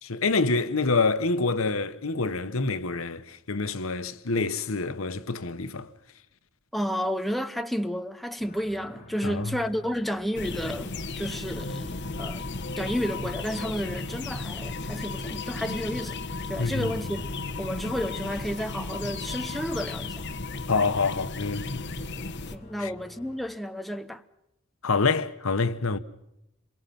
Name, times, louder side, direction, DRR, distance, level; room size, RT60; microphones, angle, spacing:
voice 1, 0.0-5.9 9.2-9.6 16.6-16.9 20.7-21.8 22.8-22.9 24.8-26.0, left 4 dB, 85° left, 1.2 m, -27 dB
voice 2, 6.7-12.5 12.8-16.2 16.5-17.2 17.6-20.2 22.5-24.2, equal, ahead, 0.8 m, -31 dB
sound 1, 8.4-23.4, left 1 dB, 40° left, 2.8 m, -49 dB
sound 2, 10.3-22.6, left 3 dB, 60° left, 1.3 m, -35 dB
27.0 x 23.0 x 5.9 m
head